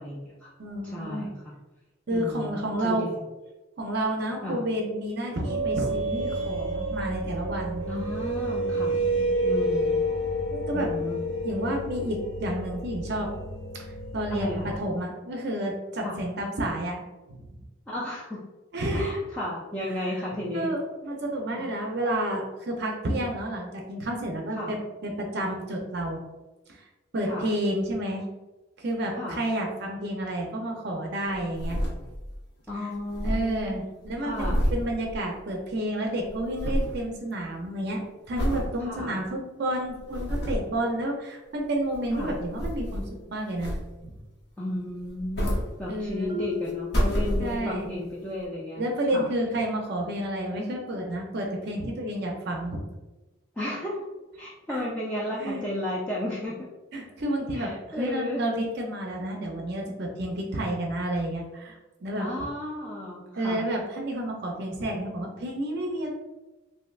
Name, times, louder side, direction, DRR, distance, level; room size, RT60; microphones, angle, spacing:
voice 1, 0.0-0.5 0.8-1.5 2.1-3.2 4.4-4.6 7.9-8.9 9.4-10.0 10.7-11.2 14.3-14.8 16.0-16.2 17.9-18.4 18.9-20.7 21.6-21.7 24.5-24.7 27.2-27.5 29.1-29.4 32.7-33.9 34.2-34.6 38.8-39.2 42.1-42.3 44.6-48.8 49.1-49.3 53.6-54.0 54.4-56.7 57.5-58.5 62.2-63.6, left 1 dB, 5° left, -7 dB, 0.3 m, -33 dB
voice 2, 0.6-1.3 2.1-3.0 3.8-7.9 9.1-9.3 10.5-10.9 11.4-13.3 13.7-17.0 17.4-17.5 18.7-19.1 20.1-20.2 20.5-26.2 26.7-26.9 27.1-28.3 28.8-31.8 33.2-38.0 38.3-43.8 45.9-46.4 47.4-47.9 48.8-52.8 54.7-54.8 55.4-55.7 56.9-62.3 63.3-66.1, right 1 dB, 55° right, 0 dB, 0.5 m, -30 dB
sound 1, 5.4-14.8, right 1 dB, 75° left, 1.1 m, -29 dB
sound 2, 31.3-32.4 32.7-32.8 33.0-35.8 36.0-37.0 37.5-37.8 38.4-38.7 39.3-39.4 39.9-40.7 41.7-43.2 43.6-44.2 45.0-46.3 46.7-47.9 48.4-48.5, equal, 55° left, 0.8 m, -29 dB
Marimba xylophone, 46.3-48.0, left 4 dB, 20° right, 0.8 m, -36 dB
3.2 x 2.6 x 2.3 m, 1.1 s
head